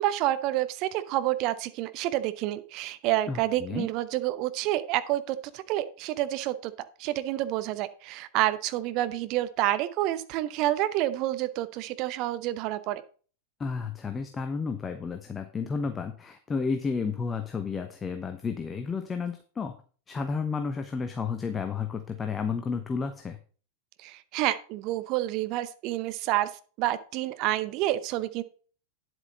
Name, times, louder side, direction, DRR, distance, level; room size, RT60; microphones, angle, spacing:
voice 1, 0.0-13.0 24.0-26.5 26.8-28.4, right 14 dB, 40° right, 13 dB, 0.8 m, -28 dB
voice 2, 3.3-3.9 13.6-19.7 20.1-23.4, left 5 dB, 20° left, 7 dB, 1.0 m, -32 dB
9.9 x 7.9 x 4.0 m, 0.39 s
figure-of-eight pair, 90°, 0 cm